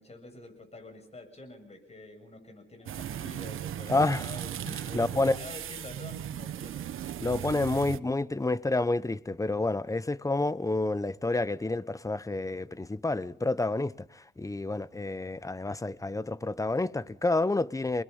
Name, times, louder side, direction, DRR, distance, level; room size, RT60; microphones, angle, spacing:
voice 1, 0.0-6.8, left 2 dB, 30° left, 7.6 m, -47 dB
sound 1, 2.9-8.0, right 10 dB, 80° right, 1.0 m, -37 dB
voice 2, 3.9-5.4 7.2-18.0, left 2 dB, 15° left, 1.0 m, -29 dB
29.5 x 21.0 x 5.6 m
cardioid pair, 95°, 21 cm